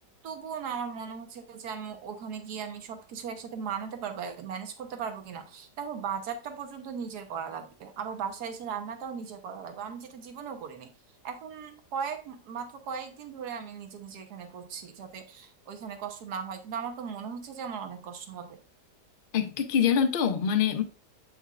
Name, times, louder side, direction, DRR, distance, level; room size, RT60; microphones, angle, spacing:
voice 1, 0.2-10.9 11.2-18.6, right 7 dB, 70° right, 1.5 m, -37 dB
voice 2, 19.3-20.8, left 7 dB, 55° left, 0.6 m, -24 dB
8.1 x 5.3 x 2.4 m
omnidirectional pair, 1.8 m